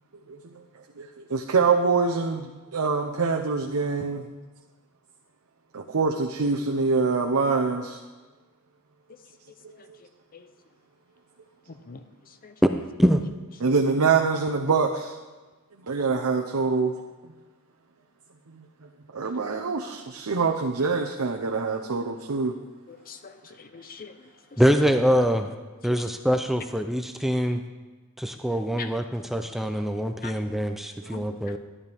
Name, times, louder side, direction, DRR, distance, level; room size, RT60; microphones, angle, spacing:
voice 1, 1.0-4.2 5.7-8.0 13.6-15.1 15.9-16.9 19.1-22.5 31.0-31.1, right 4 dB, 80° right, 1 dB, 0.8 m, -25 dB
voice 2, 22.9-24.1 25.9-26.0 28.8-28.9 30.2-30.3 31.1-31.3, left 5 dB, 40° left, 9 dB, 0.6 m, -42 dB
voice 3, 24.6-25.5 25.8-27.6 28.2-31.6, equal, ahead, 6 dB, 0.4 m, -24 dB
12.0 x 11.0 x 3.5 m, 1.3 s
head